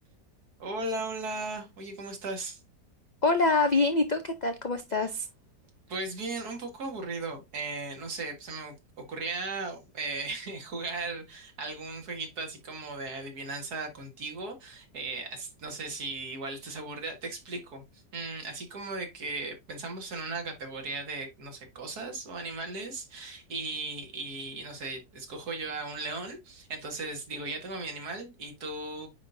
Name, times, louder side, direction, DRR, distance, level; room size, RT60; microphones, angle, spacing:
voice 1, 0.6-2.6 5.9-8.7 9.1-17.8 18.1-29.1, right 3 dB, 65° right, 2.2 m, -37 dB
voice 2, 3.2-5.3, left 3 dB, 80° left, 0.4 m, -25 dB
9.3 x 4.0 x 2.6 m
omnidirectional pair, 1.8 m